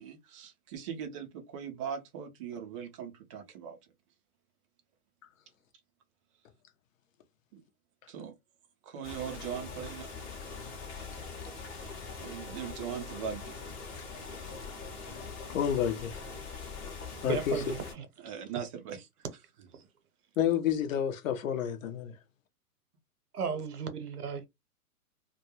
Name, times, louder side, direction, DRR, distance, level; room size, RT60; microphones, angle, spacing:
voice 1, 0.0-3.8 7.5-7.6 8.1-8.3 8.8-10.1 12.2-13.5 13.8-14.1 17.3-17.6 18.2-19.1, right 8 dB, 25° right, 0.4 m, -40 dB
sound 1, 9.0-17.9, left 4 dB, 20° left, 0.7 m, -42 dB
voice 2, 15.5-16.2 17.2-17.5 20.4-22.1, left 9 dB, 60° left, 0.7 m, -29 dB
voice 3, 17.2-18.1 23.3-24.5, right 6 dB, 80° right, 1.0 m, -35 dB
2.3 x 2.1 x 2.8 m
hypercardioid pair, 125°, 45 cm